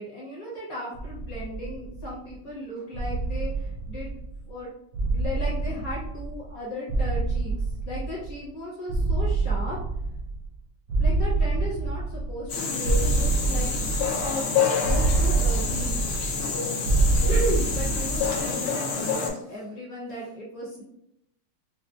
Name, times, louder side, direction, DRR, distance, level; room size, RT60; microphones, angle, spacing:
voice 1, 0.0-4.1 4.4-4.7 5.0-9.8 11.0-13.7 14.2-14.5 14.8-16.0 17.3-20.8, left 1 dB, 50° left, -6 dB, 1.2 m, -35 dB
sound 1, 0.9-2.3 2.9-4.5 4.9-6.6 6.9-8.5 8.9-10.6 10.9-12.5 12.8-14.4 14.8-16.5 16.8-18.5, right 3 dB, 90° right, 0.8 m, -26 dB
sound 2, 12.5-19.3, left 5 dB, 75° left, 1.5 m, -28 dB
4.9 x 2.0 x 2.4 m, 0.79 s
omnidirectional pair, 2.4 m